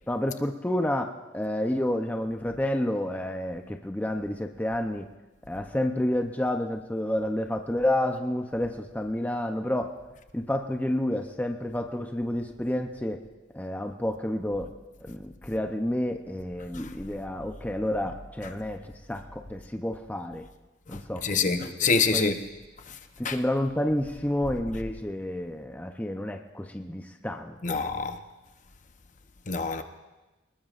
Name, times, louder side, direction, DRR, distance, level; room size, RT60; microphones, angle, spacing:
voice 1, 0.1-5.1 5.5-9.9 10.3-13.2 13.5-14.7 15.0-18.8 19.1-20.4 20.9-22.4 23.2-27.8, left 1 dB, 10° left, 4 dB, 0.6 m, -30 dB
voice 2, 20.9-22.4 23.2-23.3 27.6-28.2 29.5-29.8, left 4 dB, 40° left, 7 dB, 0.8 m, -26 dB
24.0 x 20.0 x 2.5 m, 1.1 s
head